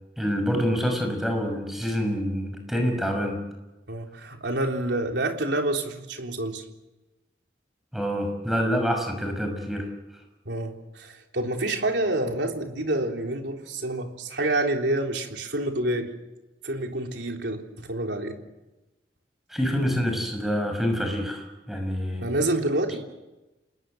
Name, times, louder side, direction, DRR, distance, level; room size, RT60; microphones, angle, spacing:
voice 1, 0.2-3.4 7.9-9.9 19.5-22.3, equal, ahead, 3 dB, 6.0 m, -26 dB
voice 2, 3.9-6.6 10.5-16.1 16.6-18.4 22.2-23.0, right 1 dB, 80° right, 3 dB, 3.6 m, -28 dB
28.5 x 20.0 x 7.9 m, 1.0 s
head